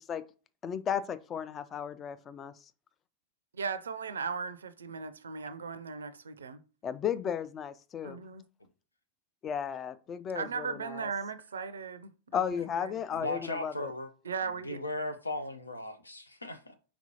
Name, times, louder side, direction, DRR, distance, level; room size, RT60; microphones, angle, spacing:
voice 1, 0.6-2.5 6.8-8.2 9.4-11.1 12.3-13.9, left 8 dB, 25° left, 0.3 m, -34 dB
voice 2, 3.5-6.6 8.0-8.4 10.3-12.4 12.8-12.9 14.3-14.8, right 5 dB, 70° right, 0.4 m, -37 dB
voice 3, 13.1-14.1 14.6-16.7, left 1 dB, 80° left, 0.5 m, -37 dB
4.3 x 4.1 x 2.8 m
figure-of-eight pair, 90°, 0 cm